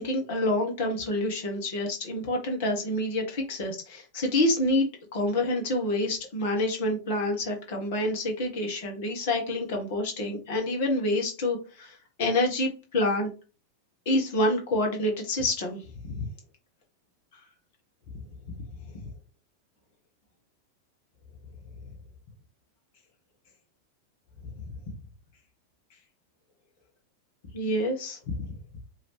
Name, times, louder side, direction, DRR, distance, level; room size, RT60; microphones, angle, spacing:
voice 1, 0.0-13.3 14.0-16.2 19.0-19.1 27.5-28.2, left 1 dB, 50° left, 2 dB, 1.4 m, -27 dB
4.8 x 2.8 x 3.3 m, 0.31 s
figure-of-eight pair, 90°, 0 cm